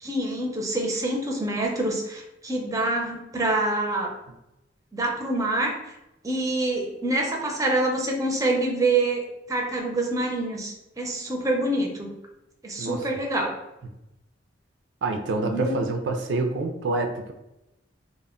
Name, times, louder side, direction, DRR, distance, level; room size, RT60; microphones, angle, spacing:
voice 1, 0.0-4.1 4.9-5.7 6.2-9.2 9.5-12.1 12.6-13.5 15.4-15.8, right 2 dB, 20° right, 0 dB, 0.5 m, -26 dB
voice 2, 15.0-17.3, right 3 dB, 75° right, 5 dB, 0.3 m, -27 dB
2.1 x 2.0 x 3.6 m, 0.91 s
head